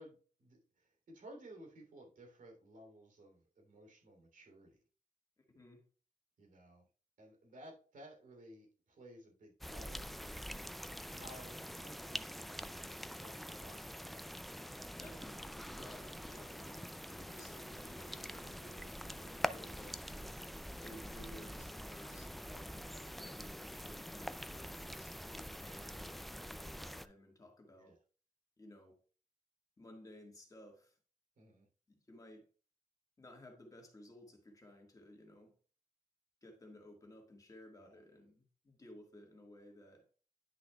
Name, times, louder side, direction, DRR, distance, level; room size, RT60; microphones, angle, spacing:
voice 1, 0.0-4.8 6.4-6.8 7.2-10.2 11.0-12.2 12.6-14.3 27.8-28.0 31.4-31.7 37.8-38.0, right 1 dB, 75° right, 3.1 m, -57 dB
voice 2, 5.4-5.9 15.0-20.1 20.8-28.0 28.6-29.0 29.8-31.0 31.9-32.5 33.2-35.6 36.4-40.1, left 1 dB, 25° left, 1.7 m, -57 dB
sound 1, 9.6-27.1, equal, ahead, 0.3 m, -45 dB
10.0 x 6.1 x 2.3 m
wide cardioid pair, 115°, 14 cm